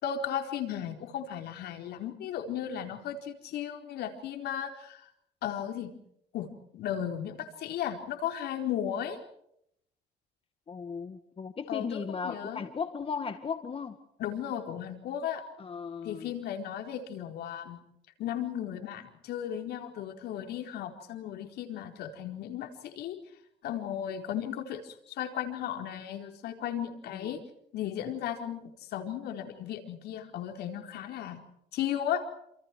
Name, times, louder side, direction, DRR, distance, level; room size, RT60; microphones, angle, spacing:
voice 1, 0.0-5.0 5.4-5.9 6.3-6.5 6.7-9.2 11.7-12.6 14.2-15.4 16.0-17.8 18.2-23.2 23.6-27.4 27.7-31.4 31.7-32.2, left 9 dB, 75° left, 5 dB, 4.4 m, -35 dB
voice 2, 10.7-14.0 15.6-16.3 27.1-27.3, left 5 dB, 35° left, 8 dB, 2.0 m, -36 dB
28.5 x 28.0 x 4.7 m, 0.74 s
cardioid pair, 110°, 17 cm